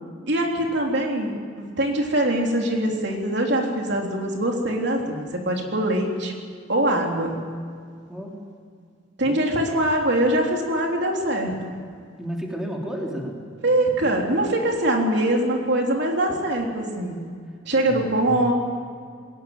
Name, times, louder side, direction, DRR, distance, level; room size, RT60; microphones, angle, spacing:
voice 1, 0.3-6.3 6.7-7.3 9.2-11.7 13.6-17.2 17.7-18.5, right 1 dB, 60° right, 1 dB, 3.6 m, -23 dB
voice 2, 9.2-9.6 12.2-13.4 17.8-18.5, equal, 5° right, -2 dB, 3.6 m, -32 dB
21.5 x 19.0 x 9.1 m, 2.1 s
head